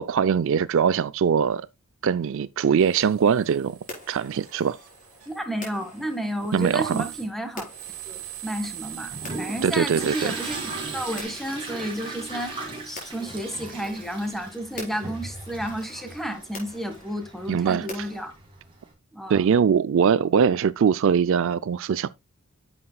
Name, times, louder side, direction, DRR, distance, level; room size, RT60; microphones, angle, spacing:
voice 1, 0.0-1.7 2.0-3.8 4.1-4.8 6.5-7.1 9.6-10.4 17.5-18.0 19.3-22.1, right 7 dB, 60° right, 0.4 m, -22 dB
sound 1, 2.8-11.2, right 13 dB, 80° right, 3.2 m, -41 dB
sound 2, 3.9-18.2, left 2 dB, 40° left, 4.4 m, -46 dB
voice 2, 5.3-7.7 8.1-9.1 9.4-10.6 10.9-12.5 12.8-18.3 19.1-19.5, equal, ahead, 1.5 m, -31 dB
Toilet flush, 8.6-18.9, right 2 dB, 25° right, 3.5 m, -38 dB
9.7 x 7.7 x 2.2 m
head